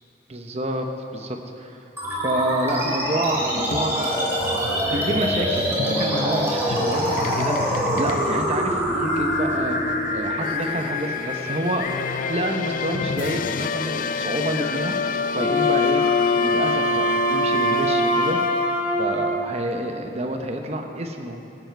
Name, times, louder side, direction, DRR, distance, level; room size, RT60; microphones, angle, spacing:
voice 1, 0.3-0.9 1.1-1.8 2.2-9.8 10.1-11.9 12.3-16.0 16.4-18.4 19.0-21.4, right 1 dB, 35° right, 4 dB, 0.9 m, -28 dB
sound 1, 2.0-12.9, equal, 15° right, 2.6 m, -25 dB
sound 2, 3.5-19.0, left 5 dB, 45° left, 0.3 m, -29 dB
Wind instrument woodwind instrument, 15.3-19.5, left 1 dB, 25° left, 2.0 m, -22 dB
16.0 x 8.1 x 4.6 m, 2.7 s
head